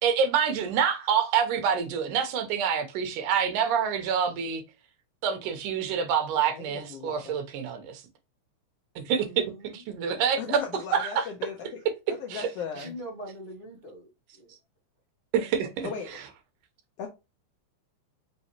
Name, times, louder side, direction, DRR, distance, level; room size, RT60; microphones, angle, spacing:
voice 1, 0.0-4.6 5.2-8.0 9.0-9.3 9.7-10.6 10.9-11.2 12.3-12.5 15.3-15.9, right 7 dB, 85° right, 2.3 m, -26 dB
voice 2, 6.5-7.4 10.4-11.8 12.2-13.0 15.8-16.1 17.0-17.1, left 6 dB, 85° left, 1.3 m, -37 dB
voice 3, 9.2-9.8 12.7-14.1 14.3-14.5, right 1 dB, 35° right, 0.9 m, -42 dB
5.4 x 2.8 x 2.9 m
omnidirectional pair, 3.5 m